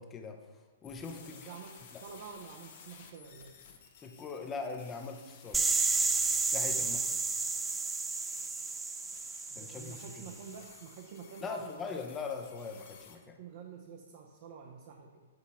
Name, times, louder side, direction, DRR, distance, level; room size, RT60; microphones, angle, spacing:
voice 1, 0.0-1.5 1.9-2.1 4.0-5.7 6.5-7.0 9.5-10.4 11.4-13.4, left 4 dB, 20° left, 4 dB, 0.7 m, -41 dB
sound 1, 0.8-13.2, left 6 dB, 55° left, 1.0 m, -55 dB
voice 2, 1.2-3.5 6.8-7.0 9.5-11.9 13.4-15.3, right 6 dB, 50° right, 1 dB, 0.7 m, -48 dB
sound 2, 5.5-10.3, right 4 dB, 10° right, 0.3 m, -31 dB
8.0 x 4.0 x 4.2 m, 1.4 s
figure-of-eight pair, 115°, 0 cm